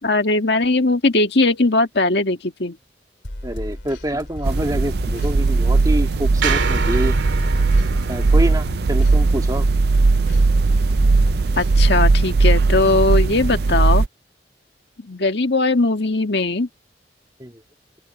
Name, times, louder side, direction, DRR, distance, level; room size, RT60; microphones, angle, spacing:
voice 1, 0.0-2.8 11.6-14.1 15.0-16.7, left 2 dB, 65° left, 1.8 m, -19 dB
sound 1, 3.2-13.5, left 1 dB, 90° left, 2.6 m, -33 dB
voice 2, 3.4-7.2 8.1-9.7 17.4-17.6, equal, 20° right, 2.5 m, -26 dB
sound 2, 4.4-14.1, right 3 dB, 60° right, 0.5 m, -18 dB
sound 3, 6.4-10.7, right 4 dB, 90° right, 2.2 m, -28 dB
open air
head